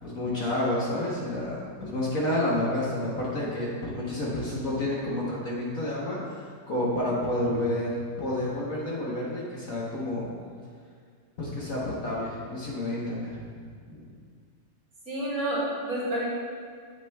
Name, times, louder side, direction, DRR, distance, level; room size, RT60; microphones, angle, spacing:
voice 1, 0.0-10.3 11.4-13.5 13.7-14.1, left 1 dB, 50° left, -6 dB, 1.5 m, -30 dB
voice 2, 15.0-16.2, right 1 dB, 50° right, -7 dB, 2.6 m, -29 dB
8.8 x 8.1 x 2.3 m, 2.1 s
omnidirectional pair, 2.0 m